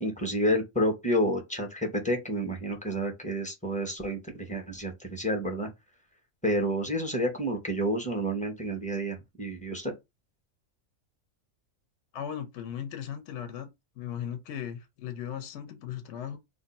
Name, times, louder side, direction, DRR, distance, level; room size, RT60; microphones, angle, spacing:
voice 1, 0.0-5.7 6.4-9.9, equal, 10° left, 0.5 m, -29 dB
voice 2, 12.1-13.7 14.0-16.4, left 9 dB, 65° left, 0.8 m, -37 dB
2.6 x 2.2 x 4.0 m
omnidirectional pair, 1.4 m